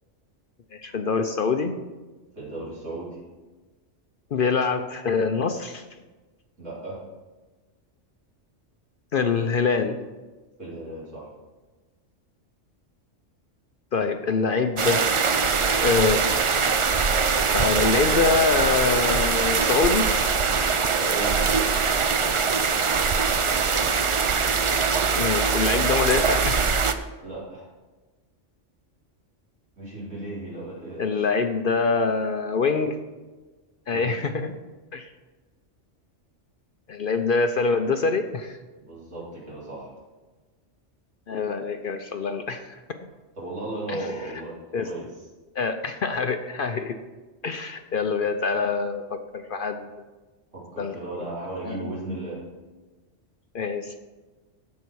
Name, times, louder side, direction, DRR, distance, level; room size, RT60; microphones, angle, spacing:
voice 1, 0.7-1.7 4.3-5.8 9.1-10.0 13.9-15.0 15.8-16.2 17.5-20.1 25.2-26.7 31.0-33.0 33.9-34.5 34.9-35.1 36.9-38.6 41.3-42.8 43.9-44.1 44.7-44.9 45.6-47.0 47.4-49.9 50.8-50.9 51.6-51.9 53.5-54.0, left 4 dB, 55° left, 7 dB, 0.7 m, -25 dB
voice 2, 2.4-3.2 6.6-7.0 10.6-11.3 21.0-21.4 27.2-27.7 29.8-31.3 33.9-34.2 38.8-39.9 43.4-44.5 44.8-45.0 50.5-52.4, right 2 dB, 75° right, -7 dB, 4.4 m, -35 dB
sound 1, 14.8-26.9, right 5 dB, 50° right, 0.3 m, -22 dB
15.5 x 5.6 x 4.7 m, 1.2 s
omnidirectional pair, 1.3 m